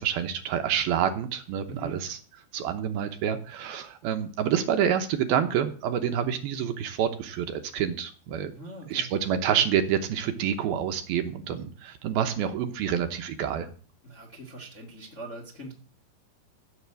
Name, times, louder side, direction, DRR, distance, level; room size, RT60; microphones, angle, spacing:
voice 1, 0.0-2.2 2.5-8.5 8.9-13.7, right 9 dB, 70° right, 7 dB, 2.6 m, -27 dB
voice 2, 1.7-2.0 8.5-9.1 14.0-15.7, right 2 dB, 35° left, 1 dB, 1.2 m, -41 dB
15.0 x 6.5 x 7.5 m, 0.41 s
omnidirectional pair, 4.9 m